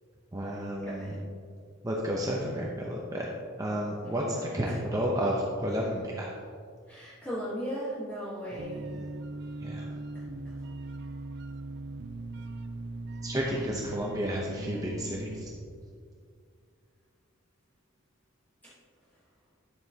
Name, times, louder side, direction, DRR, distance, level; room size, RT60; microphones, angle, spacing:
voice 1, 0.3-1.2 1.8-3.3 3.6-4.2 4.5-6.3 8.9-9.0 9.6-9.9 13.2-15.5, equal, 15° right, -3 dB, 0.7 m, -31 dB
voice 2, 0.8-1.2 4.0-4.8 6.9-8.9 10.4-10.5 13.4-13.9 18.6-18.7, equal, 10° left, -9 dB, 1.2 m, -38 dB
sound 1, 8.6-15.4, right 2 dB, 55° right, 0.4 m, -40 dB
10.5 x 7.6 x 2.8 m, 2.2 s
head